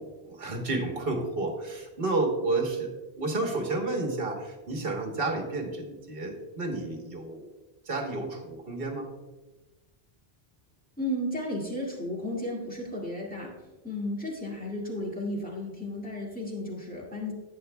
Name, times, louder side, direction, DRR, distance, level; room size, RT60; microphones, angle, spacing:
voice 1, 0.0-2.9 3.2-7.5 7.8-9.1, right 2 dB, 65° right, 3 dB, 1.5 m, -31 dB
voice 2, 11.0-13.6 13.8-17.3, left 1 dB, 10° left, -4 dB, 1.9 m, -33 dB
11.0 x 9.1 x 2.2 m, 1.1 s
omnidirectional pair, 1.1 m